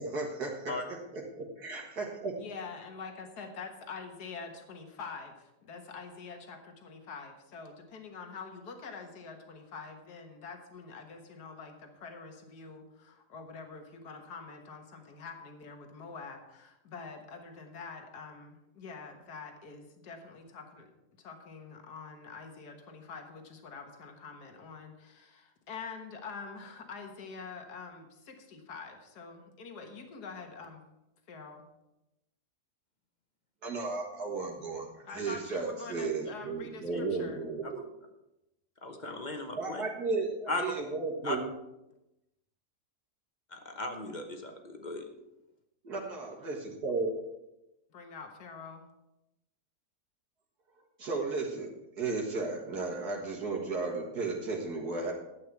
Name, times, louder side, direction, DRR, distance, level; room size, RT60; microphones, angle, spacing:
voice 1, 0.0-2.4 33.6-37.8 39.6-41.5 45.8-47.1 51.0-51.7 52.0-55.1, right 3 dB, 70° right, -1 dB, 2.0 m, -34 dB
voice 2, 2.4-20.9 21.2-30.8 31.3-31.7 35.1-37.4 47.9-48.9, left 4 dB, 70° left, 4 dB, 1.9 m, -45 dB
voice 3, 38.8-39.8 40.5-40.6 41.2-41.4 43.5-45.1, left 2 dB, 30° left, 4 dB, 1.1 m, -36 dB
12.0 x 8.6 x 4.7 m, 0.93 s
omnidirectional pair, 1.8 m